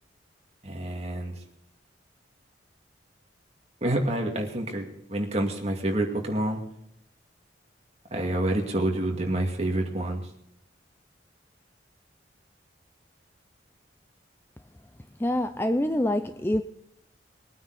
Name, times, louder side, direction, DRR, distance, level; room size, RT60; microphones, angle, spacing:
voice 1, 0.6-1.3 3.8-6.6 8.1-10.3, right 1 dB, 35° right, 1 dB, 2.4 m, -28 dB
voice 2, 15.2-16.6, left 1 dB, 10° left, 10 dB, 0.4 m, -25 dB
22.0 x 9.2 x 4.1 m, 0.75 s
head